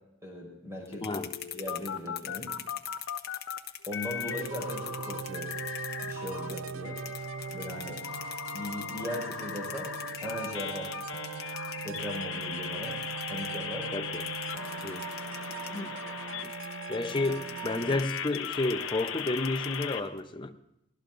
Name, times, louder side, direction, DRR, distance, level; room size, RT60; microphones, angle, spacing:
voice 1, 0.2-1.1 1.5-2.6 3.9-5.5 6.0-7.0 7.5-8.0 8.5-9.9 10.2-10.9 11.8-13.0 13.3-13.9 17.3-17.4, left 1 dB, 15° right, 5.2 m, -38 dB
sound 1, 0.9-3.6 3.9-6.5 6.8-20.0, left 8 dB, 65° left, 0.7 m, -39 dB
sound 2, 0.9-6.7 7.0-13.6 14.1-15.8 16.4-20.2, left 10 dB, 50° left, 1.1 m, -42 dB
voice 2, 1.0-1.3 13.9-14.3 14.8-15.0 15.7-15.9 16.4-16.5 16.9-20.6, left 2 dB, 25° left, 0.6 m, -31 dB
sound 3, 4.3-18.0, right 6 dB, 85° right, 0.5 m, -40 dB
24.0 x 17.0 x 2.6 m
head